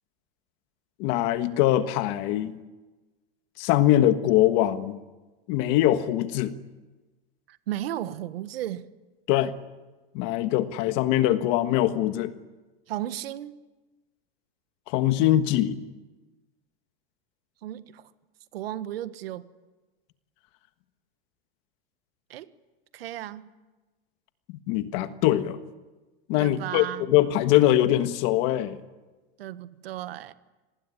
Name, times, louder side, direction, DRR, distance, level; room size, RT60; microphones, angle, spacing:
voice 1, 1.0-2.6 3.6-5.0 5.5-6.5 9.3-9.5 10.1-12.3 14.9-15.8 24.7-25.6 26.3-28.8, left 13 dB, 45° left, 10 dB, 1.5 m, -22 dB
voice 2, 7.5-8.8 12.9-13.6 17.6-18.1 18.5-19.4 22.3-22.5 22.9-23.5 26.4-27.1 29.4-30.3, right 12 dB, 90° right, 12 dB, 1.6 m, -34 dB
26.5 x 20.0 x 9.9 m, 1.2 s
supercardioid pair, 160°, 29 cm